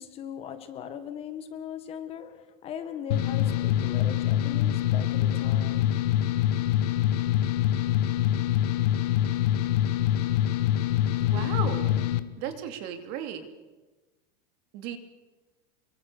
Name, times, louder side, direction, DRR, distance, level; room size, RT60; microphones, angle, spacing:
voice 1, 0.0-5.9, left 8 dB, 30° left, 9 dB, 1.6 m, -39 dB
sound 1, 3.1-12.2, left 12 dB, 75° left, 1.5 m, -25 dB
voice 2, 11.2-12.0 12.4-13.5 14.7-15.0, right 9 dB, 45° right, 8 dB, 2.6 m, -35 dB
24.5 x 23.5 x 6.7 m, 1.2 s
supercardioid pair, 160°, 21 cm